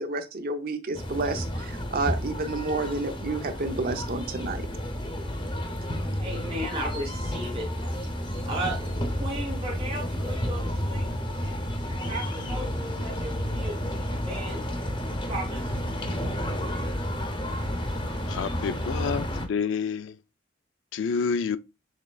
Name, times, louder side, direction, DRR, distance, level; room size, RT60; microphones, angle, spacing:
voice 1, 0.0-4.7, right 3 dB, 50° right, 0.7 m, -30 dB
sound 1, 0.9-19.5, equal, 25° left, 0.8 m, -31 dB
voice 2, 6.2-7.9 8.4-8.8 9.1-11.1 12.1-13.8 14.1-14.6 15.3-15.6, right 1 dB, 30° right, 1.1 m, -35 dB
voice 3, 18.3-20.2 20.9-21.6, left 5 dB, 70° left, 0.4 m, -28 dB
6.3 x 3.2 x 2.3 m
head